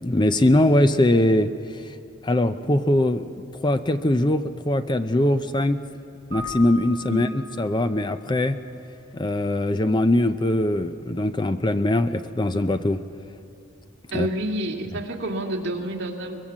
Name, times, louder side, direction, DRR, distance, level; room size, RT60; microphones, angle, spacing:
voice 1, 0.0-1.9 2.2-5.8 6.3-8.6 9.1-13.0 14.1-14.3, left 1 dB, 20° left, 10 dB, 0.5 m, -22 dB
Keyboard (musical), 6.3-8.1, left 3 dB, 35° right, 7.2 m, -38 dB
voice 2, 14.1-16.4, right 1 dB, 55° right, 0 dB, 2.2 m, -29 dB
23.0 x 21.5 x 7.4 m, 2.7 s
head